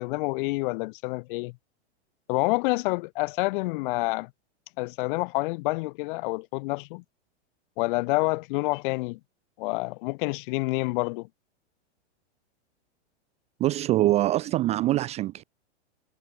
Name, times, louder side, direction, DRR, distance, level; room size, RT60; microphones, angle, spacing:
voice 1, 0.0-1.5 2.3-4.3 4.8-7.0 7.8-9.2 9.6-11.3, left 25 dB, 45° left, 1.9 m, -28 dB
voice 2, 13.6-15.4, right 15 dB, 20° right, 0.5 m, -24 dB
hypercardioid pair, 145°, 35 cm